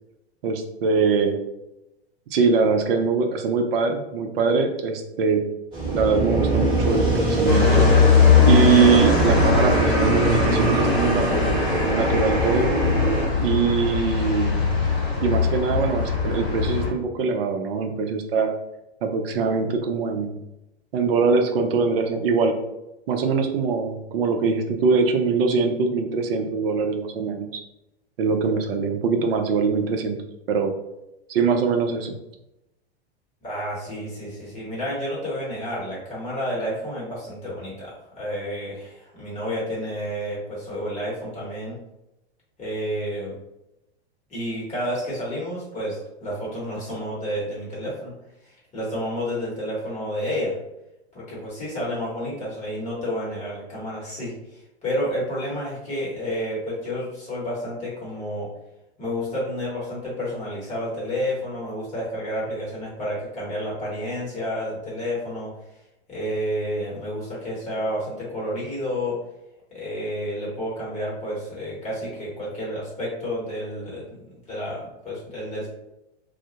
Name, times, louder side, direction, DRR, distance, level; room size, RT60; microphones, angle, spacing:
voice 1, 0.4-1.4 2.3-5.4 5.9-7.9 8.4-12.7 13.4-14.7 15.2-18.5 19.0-20.4 20.9-22.5 23.1-27.5 28.2-30.2 30.5-30.7 31.3-32.1, right 5 dB, 60° right, 5 dB, 0.5 m, -22 dB
sound 1, 5.7-13.3, right 2 dB, 15° right, 1.0 m, -23 dB
Madrid Kio Towers L, 7.5-16.9, left 5 dB, 50° left, 1.1 m, -21 dB
voice 2, 33.4-41.8 42.6-43.3 44.3-48.1 48.4-50.6 51.1-58.5 59.0-65.5 66.1-69.2 69.7-74.2 74.4-75.7, equal, 20° left, -6 dB, 0.9 m, -30 dB
2.1 x 2.1 x 2.8 m, 0.91 s
hypercardioid pair, 105°, 33 cm